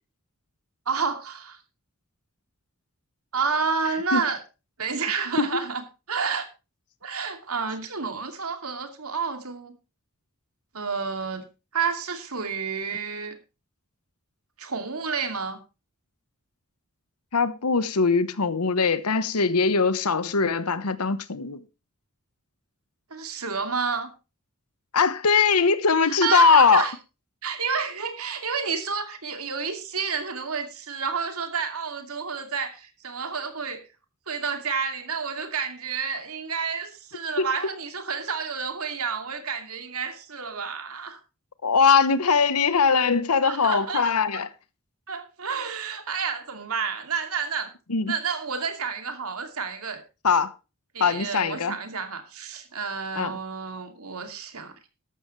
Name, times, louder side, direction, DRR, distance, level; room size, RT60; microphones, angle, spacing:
voice 1, 0.9-1.6 3.3-4.4 4.8-5.8 6.1-6.5 7.0-9.8 10.7-11.4 11.7-13.3 14.6-15.6 23.1-24.1 26.1-26.9 27.4-33.8 34.3-41.2 43.4-44.1 45.1-47.7 48.1-50.0 50.9-54.7, right 5 dB, 75° right, 2.6 m, -30 dB
voice 2, 17.3-21.6 24.9-26.8 37.4-37.7 41.6-44.5 47.9-48.1 50.2-50.5 51.0-51.8 53.2-53.4, left 5 dB, 90° left, 1.1 m, -21 dB
13.5 x 12.5 x 3.2 m
head